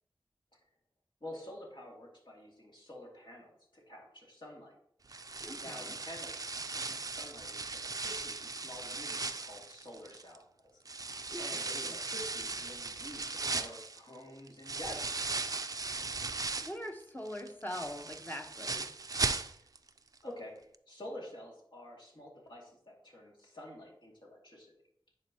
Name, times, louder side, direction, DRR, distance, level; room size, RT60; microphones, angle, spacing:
voice 1, 1.2-4.8 5.6-10.4 11.4-15.3 19.6-19.7 20.2-24.7, left 1 dB, 60° left, -3 dB, 2.2 m, -49 dB
sound 1, 5.1-10.4 10.9-16.9 17.3-19.9 20.2-20.3 20.7-20.8, right 3 dB, 40° right, 0.4 m, -38 dB
voice 2, 5.4-5.9 11.3-12.0 16.6-18.9, left 1 dB, 20° left, 4 dB, 1.0 m, -42 dB
9.8 x 4.4 x 2.9 m, 0.67 s
wide cardioid pair, 50°, 9 cm